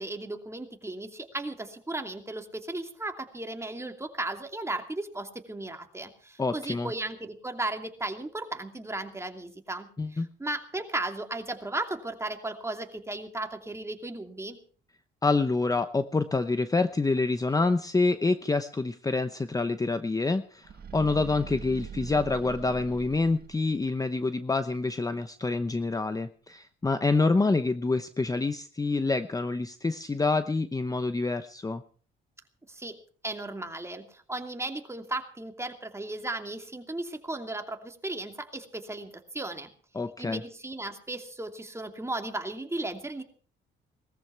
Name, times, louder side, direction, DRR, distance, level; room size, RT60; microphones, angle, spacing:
voice 1, 0.0-14.6 32.7-33.0 33.2-39.7 40.2-43.2, right 2 dB, 15° right, 5 dB, 2.7 m, -35 dB
voice 2, 6.4-6.9 10.0-10.3 15.2-31.8 39.9-40.4, left 3 dB, 20° left, 11 dB, 0.8 m, -27 dB
sound 1, 20.6-23.9, right 7 dB, 50° right, 1.6 m, -42 dB
19.5 x 14.0 x 4.7 m, 0.42 s
cardioid pair, 90°, 20 cm